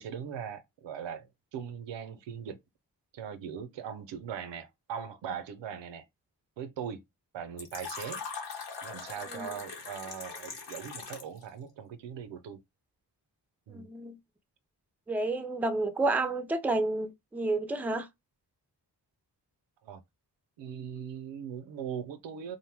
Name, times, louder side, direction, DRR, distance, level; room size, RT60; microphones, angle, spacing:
voice 1, 0.0-2.6 3.1-6.1 6.6-7.0 7.3-8.2 8.8-12.6 13.7-13.9 19.8-20.0 20.6-22.6, right 8 dB, 85° right, 0.5 m, -40 dB
Fill (with liquid), 7.6-11.4, left 5 dB, 80° left, 1.0 m, -41 dB
voice 2, 13.7-14.2 15.1-18.1, right 2 dB, 5° right, 0.4 m, -30 dB
2.5 x 2.1 x 3.2 m
cardioid pair, 50°, 42 cm